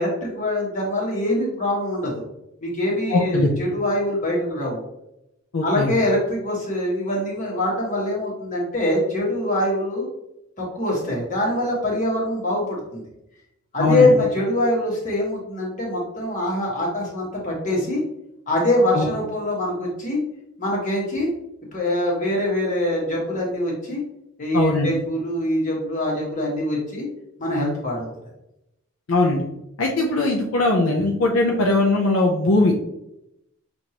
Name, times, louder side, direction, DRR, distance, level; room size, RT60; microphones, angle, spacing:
voice 1, 0.0-2.2 2.6-4.8 5.6-10.1 10.6-13.0 13.7-18.0 18.5-20.2 20.6-21.3 21.7-24.0 24.4-27.1 27.4-28.3, left 1 dB, 35° left, -3 dB, 1.4 m, -23 dB
voice 2, 3.1-3.5 5.5-5.9 13.8-14.1 18.9-19.1 24.5-24.9 29.1-29.4 29.8-32.7, left 2 dB, 65° left, -1 dB, 0.6 m, -20 dB
6.2 x 2.6 x 2.9 m, 0.85 s
head